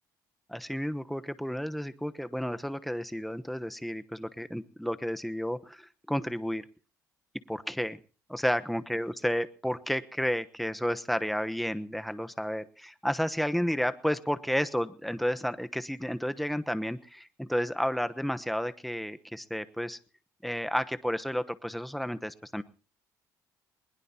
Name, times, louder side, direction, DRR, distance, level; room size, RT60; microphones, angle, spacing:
voice 1, 0.5-6.6 7.5-8.0 8.3-20.0 20.4-22.6, equal, ahead, 11 dB, 1.0 m, -31 dB
21.0 x 21.0 x 2.9 m, 0.37 s
cardioid pair, 130°, 7 cm